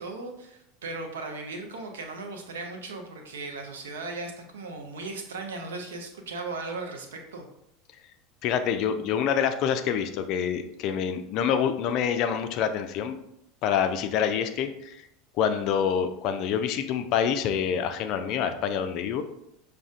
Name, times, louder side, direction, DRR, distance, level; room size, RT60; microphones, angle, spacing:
voice 1, 0.0-7.5, right 3 dB, 65° right, 3 dB, 0.6 m, -37 dB
voice 2, 8.4-13.2 13.6-15.0 15.4-19.2, left 8 dB, 45° left, 8 dB, 0.3 m, -26 dB
6.0 x 2.3 x 2.4 m, 0.78 s
figure-of-eight pair, 75°, 0 cm